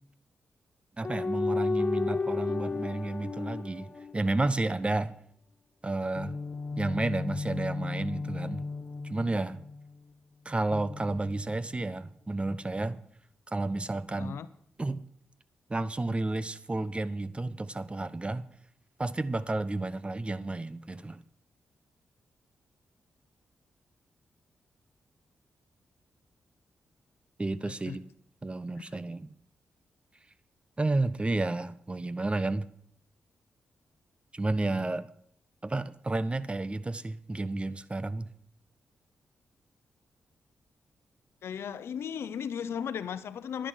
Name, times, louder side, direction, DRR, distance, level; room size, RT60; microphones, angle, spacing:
sound 1, 1.0-4.7 6.2-9.9 10.7-11.9, left 4 dB, 40° left, 0.6 m, -34 dB
voice 1, 1.0-5.1 5.8-6.4 6.8-8.6 9.0-9.6 10.4-13.0 13.5-14.4 14.8-15.0 15.7-18.4 19.0-21.2 27.4-28.0 28.4-29.4 30.8-32.7 34.3-35.1 35.6-38.3, right 2 dB, 25° right, 15 dB, 0.9 m, -31 dB
voice 2, 14.2-14.5 27.7-28.0 41.4-43.7, left 8 dB, 75° left, 14 dB, 0.8 m, -36 dB
11.0 x 10.5 x 5.7 m, 0.65 s
supercardioid pair, 45°, 4 cm